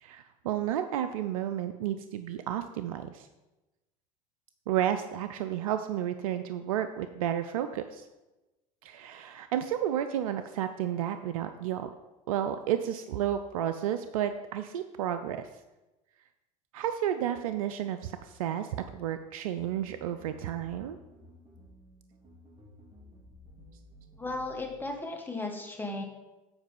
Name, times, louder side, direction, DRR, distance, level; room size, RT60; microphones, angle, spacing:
voice 1, 0.0-3.3 4.7-8.0 8.8-11.9 12.3-15.5 16.7-21.0, right 10 dB, 85° right, 9 dB, 0.5 m, -32 dB
sound 1, 19.6-24.9, left 1 dB, 35° right, 3.1 m, -54 dB
voice 2, 24.2-26.0, left 2 dB, 10° left, 1 dB, 1.8 m, -35 dB
8.0 x 4.8 x 5.3 m, 1.0 s
hypercardioid pair, 80°, 18 cm